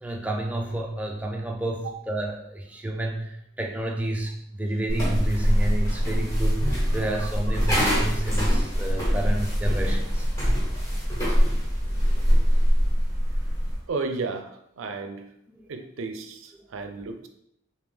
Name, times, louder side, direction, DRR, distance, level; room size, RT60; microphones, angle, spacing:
voice 1, 0.0-10.3 15.5-15.6, right 1 dB, 5° right, 0 dB, 0.4 m, -30 dB
sound 1, 4.9-13.8, equal, 15° left, 1.3 m, -23 dB
voice 2, 13.9-14.5 14.8-15.2 15.7-17.3, right 4 dB, 80° right, 8 dB, 0.4 m, -33 dB
3.4 x 2.7 x 3.3 m, 0.76 s
head